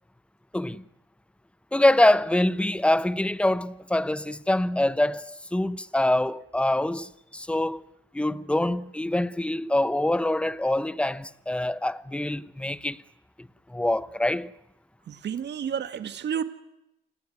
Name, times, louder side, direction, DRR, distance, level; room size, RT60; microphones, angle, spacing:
voice 1, 0.5-0.8 1.7-7.8 8.1-13.0 13.7-14.5, left 1 dB, 5° left, 0.8 m, -25 dB
voice 2, 15.1-16.4, right 8 dB, 60° right, 1.9 m, -31 dB
28.0 x 18.0 x 9.4 m
cardioid pair, 90°, 20 cm